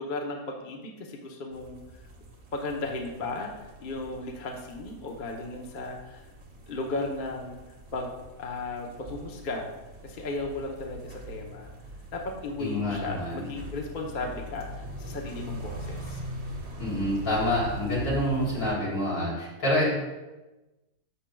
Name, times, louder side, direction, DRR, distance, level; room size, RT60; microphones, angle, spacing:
voice 1, 0.0-1.8 2.5-6.3 6.7-7.6 7.9-8.1 8.4-9.7 10.0-11.7 12.1-16.2, left 2 dB, 40° left, 0 dB, 0.9 m, -35 dB
sound 1, 1.5-18.8, right 1 dB, 50° right, 1.4 m, -42 dB
voice 2, 12.6-13.4 16.8-19.9, left 1 dB, 80° left, -6 dB, 3.7 m, -27 dB
11.0 x 7.2 x 2.3 m, 1.1 s
omnidirectional pair, 1.5 m